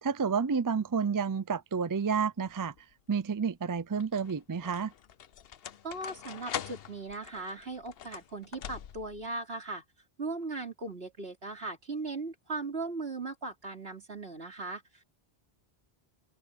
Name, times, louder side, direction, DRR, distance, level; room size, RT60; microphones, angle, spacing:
voice 1, 0.0-2.7 3.1-4.9, right 6 dB, 30° right, 0.4 m, -30 dB
sound 1, 2.4-2.9 3.8-9.3, left 9 dB, 70° left, 0.9 m, -43 dB
voice 2, 5.8-9.8 10.2-15.0, right 3 dB, 75° right, 3.6 m, -38 dB
omnidirectional pair, 1.0 m